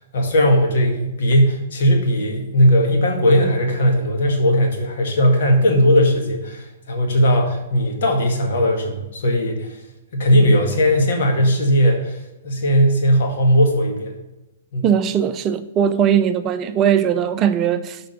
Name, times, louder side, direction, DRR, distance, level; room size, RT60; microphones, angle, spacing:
voice 1, 0.1-9.8 10.1-12.2 12.4-14.2 14.7-14.9, equal, 70° left, 1.9 m, -18 dB
voice 2, 14.8-18.0, right 8 dB, 30° right, 0.5 m, -19 dB
6.5 x 5.2 x 5.3 m
hypercardioid pair, 125°, 0 cm